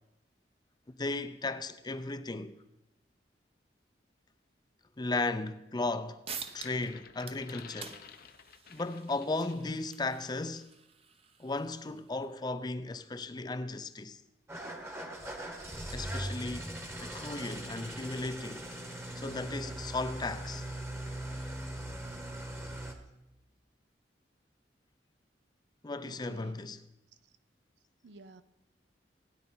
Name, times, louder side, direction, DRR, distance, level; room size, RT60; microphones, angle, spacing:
voice 1, 1.0-2.6 5.0-6.2 6.5-8.0 8.7-10.7 11.4-14.2 15.9-16.7 17.0-18.7 19.2-20.7 25.8-26.8, left 2 dB, 25° left, 0.5 m, -35 dB
sound 1, 5.9-6.0 6.3-6.9 7.2-12.3, right 6 dB, 35° right, 0.8 m, -48 dB
sound 2, 6.3-9.8 10.2-10.4, left 7 dB, 55° left, 0.7 m, -53 dB
Engine starting / Idling, 14.5-22.9, right 1 dB, 15° right, 1.2 m, -40 dB
voice 2, 26.0-26.7 28.0-28.4, right 2 dB, 75° right, 0.7 m, -52 dB
16.5 x 9.6 x 4.4 m
head